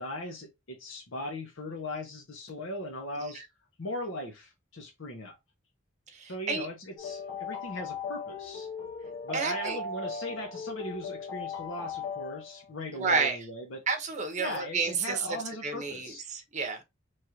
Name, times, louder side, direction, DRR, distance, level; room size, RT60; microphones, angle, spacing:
voice 1, 0.0-3.4 3.8-5.3 6.3-8.7 9.2-13.8 14.4-16.2, left 1 dB, 65° left, 0.9 m, -38 dB
voice 2, 6.1-6.7 9.3-9.8 12.9-13.4 13.9-15.3 15.6-16.8, right 4 dB, 35° right, 0.8 m, -30 dB
sound 1, 7.0-12.7, left 4 dB, 90° left, 1.1 m, -38 dB
3.2 x 2.5 x 4.3 m
head